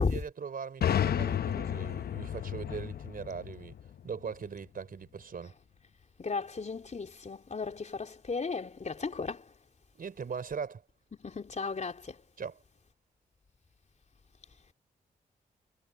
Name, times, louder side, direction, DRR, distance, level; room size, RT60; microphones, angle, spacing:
voice 1, 0.0-3.7 4.0-5.5 9.9-10.8 12.4-12.6, right 6 dB, 60° right, 4.2 m, -40 dB
sound 1, 0.8-4.5, left 9 dB, 70° left, 0.8 m, -32 dB
voice 2, 6.2-9.5 11.2-12.2, left 4 dB, 45° left, 3.5 m, -34 dB
cardioid pair, 55°, 17 cm